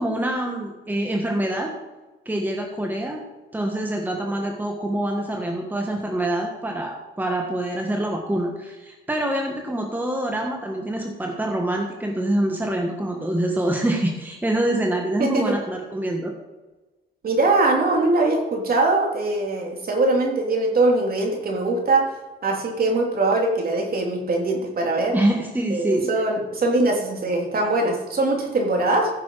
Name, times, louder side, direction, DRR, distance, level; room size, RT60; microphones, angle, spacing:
voice 1, 0.0-1.7 2.2-3.2 3.5-16.3 25.1-26.1, right 1 dB, 10° right, 1 dB, 1.6 m, -25 dB
voice 2, 15.2-15.5 17.2-22.0 22.4-25.1 25.7-29.1, right 2 dB, 50° right, 1 dB, 3.0 m, -22 dB
15.0 x 6.9 x 4.8 m, 1.2 s
cardioid pair, 90°, 20 cm